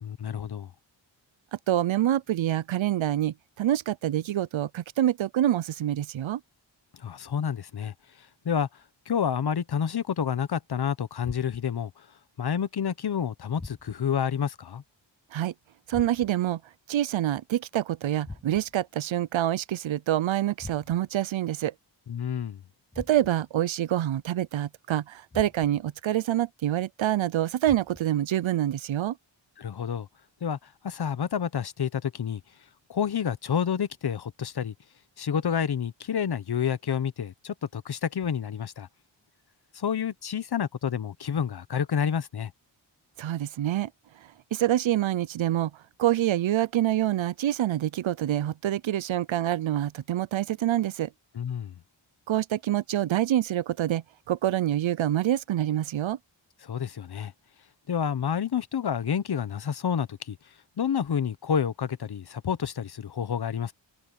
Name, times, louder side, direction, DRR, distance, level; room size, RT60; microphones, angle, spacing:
voice 1, 0.0-0.7 6.9-7.9 8.4-8.7 9.1-11.9 12.4-14.8 22.1-22.6 29.6-30.1 30.4-32.4 32.9-34.7 35.2-38.9 39.7-42.5 51.3-51.7 56.6-57.3 57.9-60.4 60.8-63.7, left 7 dB, 55° left, 1.0 m, -29 dB
voice 2, 1.7-6.4 15.3-15.5 15.9-16.6 16.9-21.7 23.0-29.2 43.2-43.9 44.5-45.7 46.0-51.1 52.3-56.2, right 12 dB, 75° right, 0.7 m, -26 dB
sound 1, 13.6-14.2 15.9-16.5 18.2-18.9 20.6-21.2 22.9-23.6 25.3-25.9 27.6-28.3, left 2 dB, 10° left, 0.4 m, -44 dB
wide cardioid pair, 105°, 47 cm